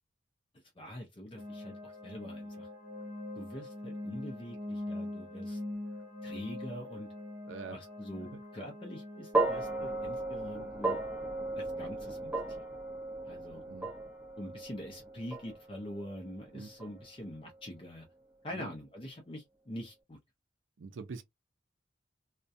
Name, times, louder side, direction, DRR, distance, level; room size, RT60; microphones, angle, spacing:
voice 1, 0.8-2.7 3.4-5.6 6.2-7.1 7.6-11.0 11.6-12.6 13.2-13.6 14.4-18.1 18.4-20.2, equal, 25° left, 0.5 m, -44 dB
sound 1, 1.4-11.6, left 1 dB, 40° right, 0.9 m, -43 dB
voice 2, 7.5-7.8 13.7-13.9 16.5-16.7 18.5-18.7 20.8-21.2, right 4 dB, 75° right, 0.5 m, -43 dB
sound 2, 9.3-17.7, right 2 dB, 5° right, 0.7 m, -36 dB
2.3 x 2.1 x 2.6 m
head